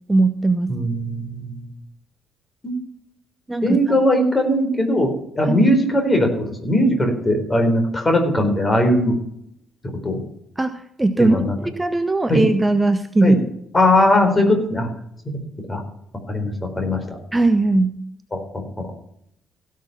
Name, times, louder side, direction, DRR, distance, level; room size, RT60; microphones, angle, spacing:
voice 1, 0.1-0.7 3.5-3.8 5.5-5.7 10.6-11.4 11.8-13.4 17.3-18.0, right 2 dB, 15° right, 10 dB, 0.9 m, -19 dB
voice 2, 0.7-1.7 2.6-2.7 3.6-5.1 5.4-9.2 10.0-10.2 11.2-11.6 12.3-12.4 13.2-13.4 13.7-14.9 15.2-15.4 15.7-15.8 16.3-17.0 18.3-18.9, left 1 dB, 25° left, 4 dB, 4.2 m, -19 dB
16.5 x 6.7 x 5.8 m, 0.71 s
figure-of-eight pair, 45°, 0 cm